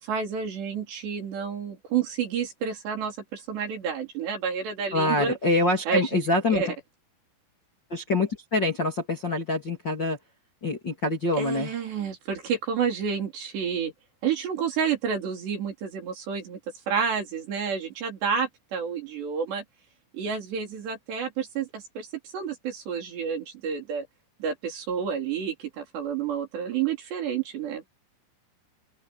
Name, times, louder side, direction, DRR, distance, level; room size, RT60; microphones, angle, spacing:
voice 1, 0.0-5.4 5.9-6.2 6.5-6.7 11.4-13.9 14.2-16.6 16.9-19.6 20.1-24.1 24.4-27.9, right 7 dB, 55° right, 6.0 m, -30 dB
voice 2, 4.9-6.6 7.9-10.2 10.6-11.7, left 2 dB, 30° left, 2.7 m, -25 dB
open air
omnidirectional pair, 5.9 m